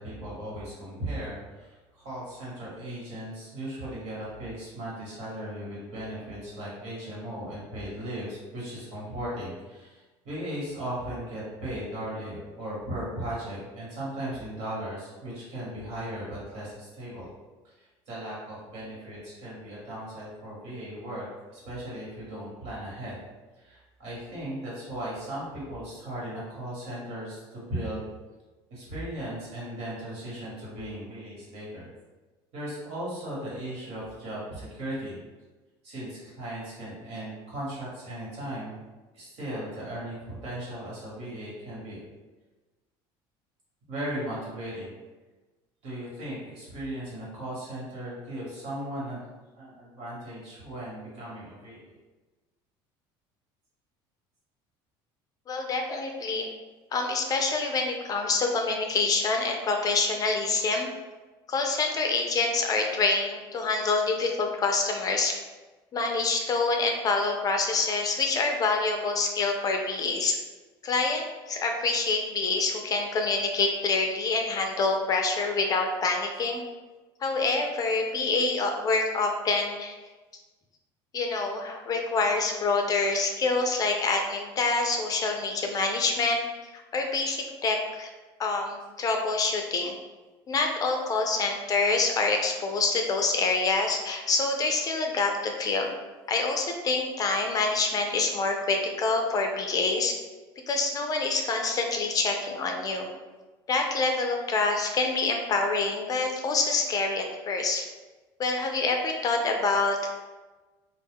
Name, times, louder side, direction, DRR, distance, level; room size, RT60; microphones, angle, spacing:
voice 1, 0.0-17.3 17.6-23.2 23.6-28.0 28.7-31.9 32.5-35.2 35.8-38.7 39.1-42.0 43.9-44.9 45.8-49.2 49.6-51.9, right 1 dB, 65° right, -6 dB, 1.4 m, -37 dB
voice 2, 55.5-56.5 56.9-60.9 61.5-65.4 65.9-70.4 70.8-76.6 77.2-79.9 81.1-86.4 86.9-88.1 88.4-89.9 90.5-95.9 96.3-100.1 100.7-103.1 103.7-107.9 108.4-110.1, left 3 dB, 35° left, 3 dB, 0.4 m, -26 dB
2.3 x 2.1 x 3.5 m, 1.2 s
supercardioid pair, 110°, 11 cm